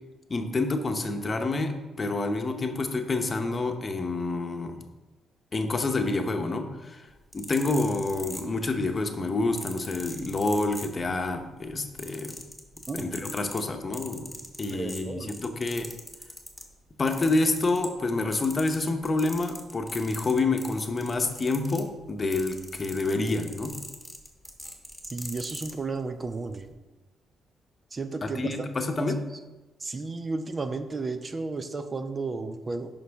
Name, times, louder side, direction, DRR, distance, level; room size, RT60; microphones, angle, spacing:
voice 1, 0.3-4.8 5.5-7.1 7.3-12.4 12.9-14.3 14.6-15.9 17.0-23.8 28.2-29.2, left 3 dB, 30° left, 5 dB, 0.9 m, -28 dB
sound 1, 7.2-8.9 9.6-11.3 11.6-16.7 17.1-18.1 18.3-25.8 26.5-26.7, left 1 dB, ahead, 1.3 m, -41 dB
voice 2, 14.7-15.3 25.1-26.7 27.9-28.5 29.0-29.1 29.8-32.9, right 3 dB, 30° right, 8 dB, 0.5 m, -33 dB
9.5 x 5.5 x 3.5 m, 1.1 s
cardioid pair, 90°, 0 cm